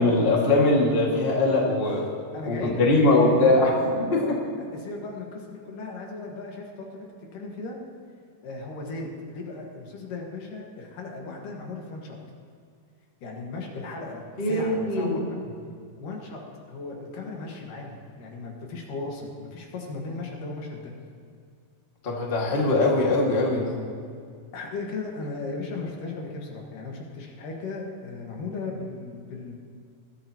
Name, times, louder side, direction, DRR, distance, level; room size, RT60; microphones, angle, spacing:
voice 1, 0.0-2.1 2.4-4.4 14.4-15.2 22.0-23.8, left 2 dB, 20° left, -3 dB, 1.5 m, -21 dB
voice 2, 2.3-3.4 4.2-4.4 4.7-7.8 8.4-12.2 13.2-15.2 16.0-20.9 24.5-29.6, left 3 dB, 70° left, 0 dB, 3.2 m, -36 dB
21.0 x 12.5 x 3.0 m, 2.2 s
omnidirectional pair, 4.1 m